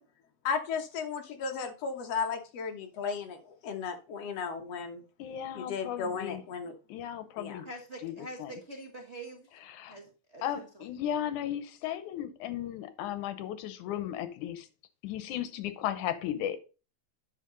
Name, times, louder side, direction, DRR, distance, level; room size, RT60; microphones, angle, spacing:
voice 1, 0.4-5.0 5.6-6.8 7.4-7.6, left 5 dB, 60° left, 2.2 m, -35 dB
voice 2, 5.2-6.4 6.9-7.7 8.0-8.1 8.4-8.6 9.7-10.0 10.4-14.7 15.0-16.6, left 11 dB, 85° left, 2.3 m, -35 dB
voice 3, 7.6-9.5 9.9-10.8, right 2 dB, 70° right, 0.6 m, -45 dB
9.0 x 5.9 x 3.9 m
omnidirectional pair, 3.4 m